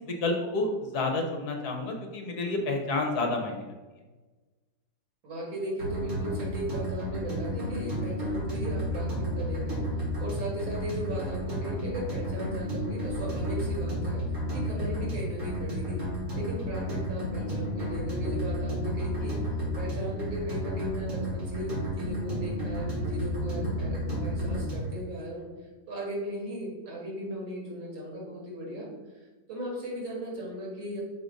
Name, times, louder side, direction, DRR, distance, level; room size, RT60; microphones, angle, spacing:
voice 1, 0.2-3.7, left 2 dB, 60° left, 2 dB, 1.3 m, -29 dB
voice 2, 5.2-9.8 10.2-14.2 14.5-16.0 16.3-25.5 25.9-31.0, equal, 85° right, -2 dB, 2.7 m, -37 dB
sound 1, 5.8-25.0, equal, 45° right, 2.8 m, -32 dB
6.3 x 3.9 x 5.1 m, 1.3 s
omnidirectional pair, 2.1 m